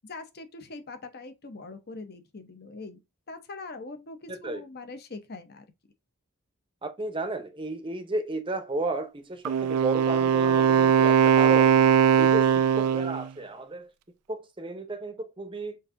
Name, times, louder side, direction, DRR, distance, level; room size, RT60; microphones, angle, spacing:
voice 1, 0.0-3.0 3.3-5.7, left 3 dB, 45° left, 0.8 m, -42 dB
voice 2, 4.3-4.6 6.8-11.7 12.2-13.9 14.3-15.8, right 2 dB, 20° right, 0.7 m, -33 dB
Wind instrument woodwind instrument, 9.5-13.3, right 8 dB, 85° right, 0.3 m, -20 dB
6.3 x 2.7 x 2.5 m
head